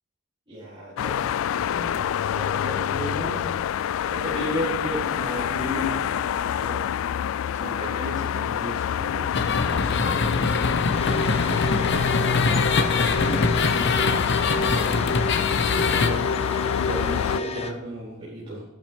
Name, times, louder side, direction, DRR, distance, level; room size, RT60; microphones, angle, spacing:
voice 1, 0.5-6.8 7.5-11.4 11.8-15.1 15.9-16.4 16.7-18.7, equal, 25° right, -11 dB, 4.4 m, -35 dB
sound 1, 1.0-17.4, left 9 dB, 80° left, 0.3 m, -27 dB
sound 2, 9.3-16.1, left 3 dB, 60° left, 1.0 m, -24 dB
sound 3, 10.9-17.7, left 2 dB, 30° left, 1.0 m, -31 dB
12.0 x 9.1 x 3.6 m, 1.0 s
head